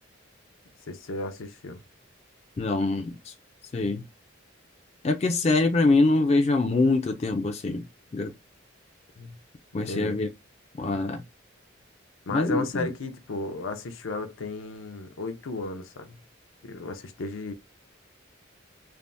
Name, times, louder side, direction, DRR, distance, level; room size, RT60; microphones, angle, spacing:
voice 1, 0.9-1.8 9.2-9.4 9.8-10.2 12.3-16.2 16.6-17.5, left 2 dB, 80° left, 0.6 m, -34 dB
voice 2, 2.6-3.3 3.7-4.0 5.0-7.9 8.1-8.3 9.7-10.3 10.8-11.2 12.3-12.9, left 3 dB, 30° left, 0.3 m, -24 dB
3.3 x 2.0 x 2.5 m
head